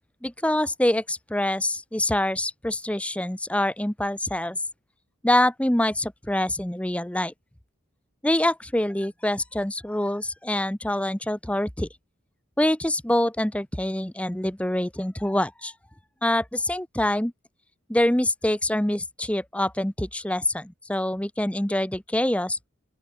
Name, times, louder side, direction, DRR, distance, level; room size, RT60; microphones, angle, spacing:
voice 1, 0.2-4.6 5.2-7.3 8.2-11.9 12.6-15.7 16.2-17.3 17.9-22.6, left 1 dB, 5° left, 0.7 m, -25 dB
open air
head